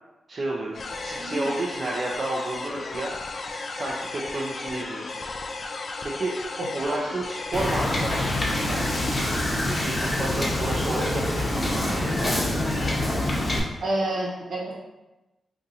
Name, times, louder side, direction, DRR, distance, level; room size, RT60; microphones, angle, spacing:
voice 1, 0.3-0.7 1.0-5.5 6.0-6.3 6.7-8.4 8.7-8.9 9.6-12.3, right 2 dB, 50° right, -3 dB, 0.5 m, -31 dB
sound 1, 0.7-9.4, left 3 dB, 55° left, 0.3 m, -35 dB
voice 2, 1.2-1.5 6.6-6.7 13.8-14.8, right 1 dB, 75° right, -4 dB, 0.9 m, -28 dB
Wind / Boat Water vehicle, 7.5-13.6, left 1 dB, 35° left, 0.8 m, -26 dB
2.6 x 2.6 x 4.1 m, 1.0 s
cardioid pair, 60°, 0 cm